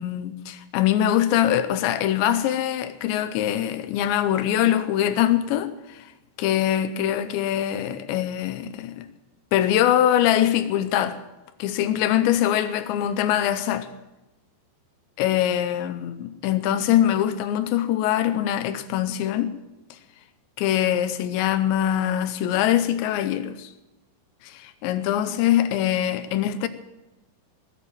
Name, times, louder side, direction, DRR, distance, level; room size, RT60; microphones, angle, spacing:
voice 1, 0.0-6.0 6.4-9.1 9.5-11.2 11.6-13.9 15.2-19.5 20.6-23.7 24.4-26.7, left 11 dB, 80° left, 3.0 m, -23 dB
19.0 x 7.4 x 8.9 m
omnidirectional pair, 5.3 m